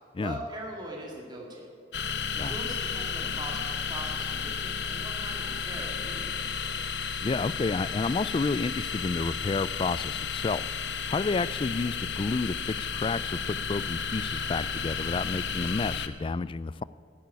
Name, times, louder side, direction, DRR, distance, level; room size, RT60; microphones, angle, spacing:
voice 1, 0.2-1.7 2.3-6.3 11.3-11.6, right 1 dB, 25° right, -1 dB, 2.1 m, -41 dB
sound 1, 1.9-16.1, left 6 dB, 65° left, 0.9 m, -33 dB
voice 2, 7.2-10.6 11.1-16.8, left 3 dB, 30° left, 18 dB, 0.3 m, -30 dB
13.0 x 11.0 x 9.5 m, 2.5 s
head